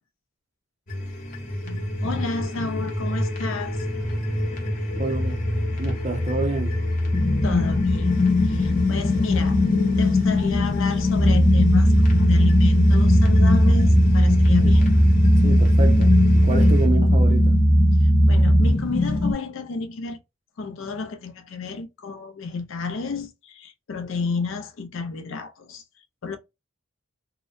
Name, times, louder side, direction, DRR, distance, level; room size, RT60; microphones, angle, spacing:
sound 1, 0.9-16.9, left 1 dB, 40° left, 0.9 m, -28 dB
voice 1, 1.6-3.9 7.4-8.2 8.4-14.9 18.0-20.2 20.6-25.8 26.2-26.4, left 4 dB, 70° left, 0.5 m, -31 dB
voice 2, 5.0-5.4 5.8-6.8 14.6-14.7 15.4-17.6, right 2 dB, 35° right, 0.6 m, -28 dB
sound 2, 7.1-19.3, left 3 dB, 15° left, 0.5 m, -22 dB
sound 3, 11.1-18.7, right 1 dB, 90° right, 0.9 m, -17 dB
2.8 x 2.1 x 2.5 m
head